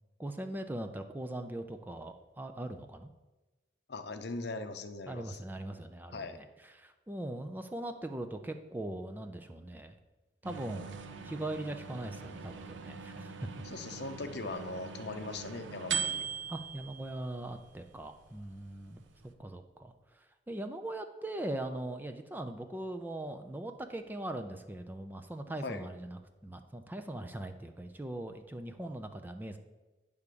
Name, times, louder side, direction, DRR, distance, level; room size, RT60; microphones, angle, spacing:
voice 1, 0.2-3.1 5.1-9.9 10.4-13.6 16.5-19.0 19.4-29.6, right 1 dB, 10° right, 7 dB, 0.4 m, -40 dB
voice 2, 3.9-5.4 6.1-6.4 13.6-16.2 25.6-25.9, left 3 dB, 60° left, 8 dB, 0.7 m, -40 dB
sound 1, 10.4-19.3, right 7 dB, 80° right, 0.7 m, -42 dB
9.6 x 3.5 x 6.7 m, 1.1 s
head